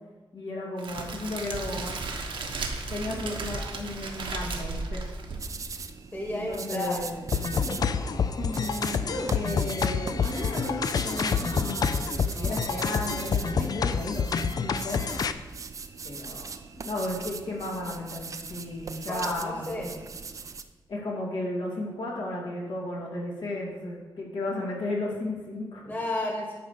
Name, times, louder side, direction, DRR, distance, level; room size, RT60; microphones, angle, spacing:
voice 1, 0.3-1.9 2.9-5.0 6.3-7.2 8.4-12.0 12.3-15.0 16.0-16.5 16.8-19.9 20.9-25.8, left 1 dB, 75° left, -3 dB, 2.6 m, -34 dB
Crackle, 0.8-5.8, right 3 dB, 85° right, 1.3 m, -34 dB
sound 1, 5.4-20.6, right 5 dB, 40° right, 0.5 m, -40 dB
voice 2, 6.1-7.0 7.5-7.9 19.1-19.9 25.8-26.5, left 2 dB, 20° left, 0 dB, 1.5 m, -32 dB
sound 2, 7.3-15.3, left 6 dB, 50° left, 0.4 m, -28 dB
11.0 x 5.1 x 6.5 m, 1.3 s
wide cardioid pair, 170°, 8 cm